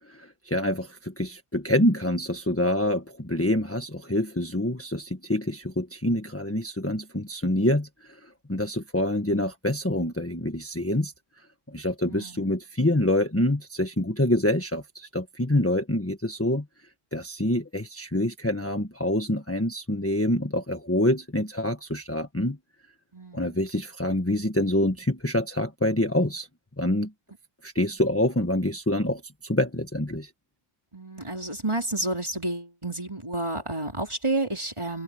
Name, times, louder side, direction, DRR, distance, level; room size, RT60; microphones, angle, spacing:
voice 1, 0.0-11.1 11.7-16.6 17.1-22.6 23.3-26.5 26.8-27.1 27.6-30.3, left 1 dB, 10° left, 1.4 m, -26 dB
voice 2, 12.1-12.5 23.1-23.6 30.9-35.0, right 2 dB, 25° right, 4.3 m, -30 dB
omnidirectional pair, 1.1 m